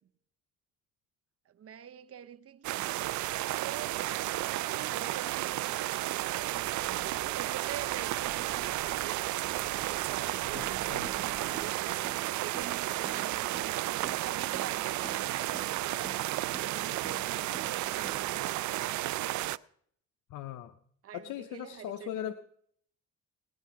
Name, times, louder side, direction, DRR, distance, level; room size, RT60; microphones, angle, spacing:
voice 1, 1.5-3.0 3.5-9.3 9.8-11.8 12.4-18.9 21.0-22.3, right 9 dB, 50° right, 0.8 m, -46 dB
sound 1, 2.6-19.6, right 16 dB, 75° right, 0.5 m, -33 dB
sound 2, 6.3-12.0, equal, 5° left, 4.8 m, -52 dB
voice 2, 10.5-11.1 20.3-20.7 21.1-22.3, left 11 dB, 85° left, 0.7 m, -39 dB
sound 3, 10.5-18.5, right 3 dB, 15° right, 0.8 m, -49 dB
18.5 x 10.0 x 4.7 m
cardioid pair, 90°, 30 cm